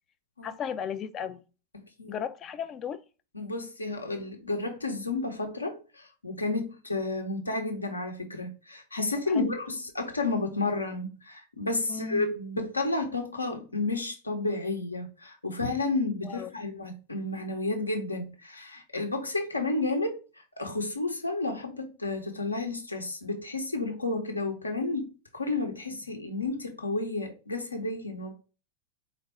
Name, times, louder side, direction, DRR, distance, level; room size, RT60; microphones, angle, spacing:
voice 1, 0.4-1.4 2.1-3.0 9.3-9.5 11.9-12.3 16.2-16.5, left 7 dB, 30° left, 0.3 m, -35 dB
voice 2, 3.3-28.3, left 2 dB, 80° left, 0.9 m, -31 dB
4.5 x 2.5 x 4.3 m
figure-of-eight pair, 90°, 0 cm